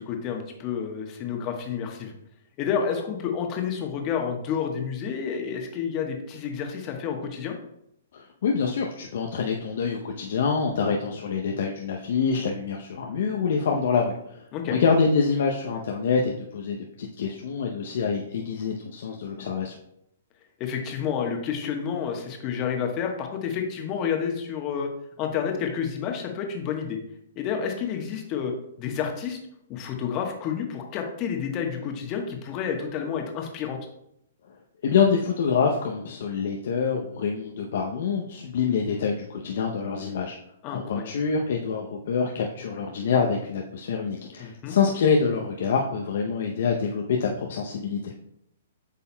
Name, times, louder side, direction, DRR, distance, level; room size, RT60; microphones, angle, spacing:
voice 1, 0.0-2.1 2.6-7.5 14.5-14.8 20.6-24.9 25.2-27.0 27.4-29.4 29.7-33.8 40.6-41.1 44.4-44.8, left 7 dB, 35° left, 3 dB, 1.1 m, -30 dB
voice 2, 8.1-19.7 34.8-40.4 40.7-48.1, left 5 dB, 60° left, 1 dB, 0.6 m, -26 dB
8.3 x 5.4 x 2.2 m, 0.77 s
hypercardioid pair, 120°, 0 cm